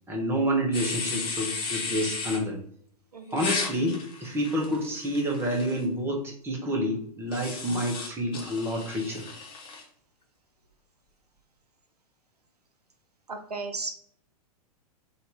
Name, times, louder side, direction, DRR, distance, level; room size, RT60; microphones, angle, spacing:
voice 1, 0.1-2.6 3.3-9.3, equal, 10° right, 0 dB, 1.0 m, -28 dB
sound 1, 0.7-2.4 3.3-5.8 7.3-9.8, left 4 dB, 25° left, 0.9 m, -35 dB
voice 2, 3.1-3.5 13.3-13.9, right 3 dB, 85° right, 7 dB, 0.6 m, -35 dB
4.0 x 2.8 x 3.4 m, 0.64 s
figure-of-eight pair, 100°, 20 cm